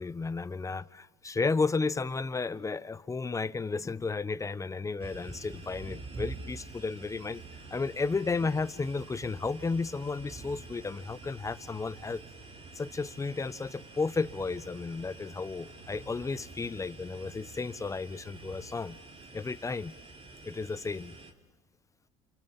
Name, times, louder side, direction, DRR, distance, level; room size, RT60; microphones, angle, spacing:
voice 1, 0.0-7.4 7.7-12.2 12.7-19.0 19.3-19.9 20.4-21.1, left 4 dB, 20° left, 1.1 m, -33 dB
sound 1, 5.0-21.3, right 3 dB, 40° right, 3.8 m, -47 dB
sound 2, 7.1-18.9, right 4 dB, 85° right, 7.9 m, -55 dB
28.5 x 28.0 x 7.3 m
supercardioid pair, 85°, 16 cm